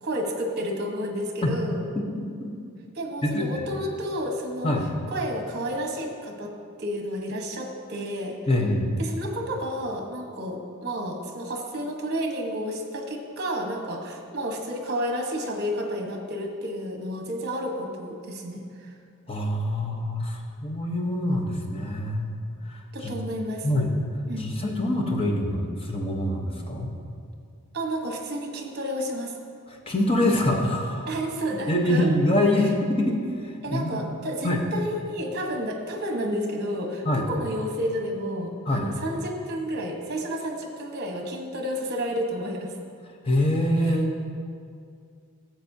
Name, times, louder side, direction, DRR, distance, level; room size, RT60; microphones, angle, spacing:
voice 1, 0.0-1.8 2.9-4.7 5.1-6.5 6.8-8.4 9.0-18.9 22.9-23.7 24.3-24.5 27.7-29.3 31.1-32.1 33.6-42.7 43.8-43.9, equal, 45° right, 2 dB, 1.1 m, -31 dB
voice 2, 3.2-3.7 4.6-4.9 8.5-9.0 19.3-22.3 22.6-23.1 23.6-23.9 24.4-26.9 29.7-31.1 31.5-34.0 34.4-34.6 37.0-37.2 38.7-38.9 43.2-44.2, left 1 dB, 25° left, 0 dB, 0.9 m, -25 dB
13.0 x 7.7 x 2.7 m, 2.3 s
head